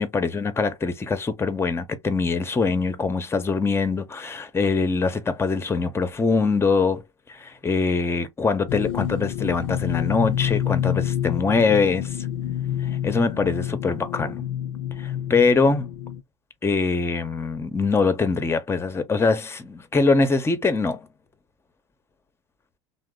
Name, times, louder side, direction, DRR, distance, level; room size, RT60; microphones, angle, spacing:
voice 1, 0.0-7.0 7.3-12.2 13.0-14.4 15.0-15.9 16.6-21.1, left 4 dB, 15° left, 0.7 m, -23 dB
sound 1, 8.7-16.2, left 10 dB, 70° left, 0.4 m, -28 dB
2.9 x 2.0 x 3.7 m
hypercardioid pair, 80°, 16 cm